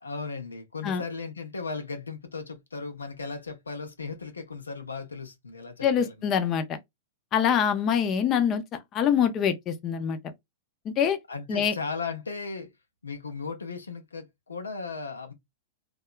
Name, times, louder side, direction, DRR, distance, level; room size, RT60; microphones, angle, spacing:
voice 1, 0.0-6.1 11.3-12.7 13.0-15.3, left 4 dB, 85° left, 0.6 m, -36 dB
voice 2, 5.8-6.8 7.3-8.6 8.9-10.2 10.9-11.2 11.5-11.7, left 8 dB, 35° left, 0.6 m, -24 dB
2.8 x 2.3 x 2.3 m
hypercardioid pair, 105°, 0 cm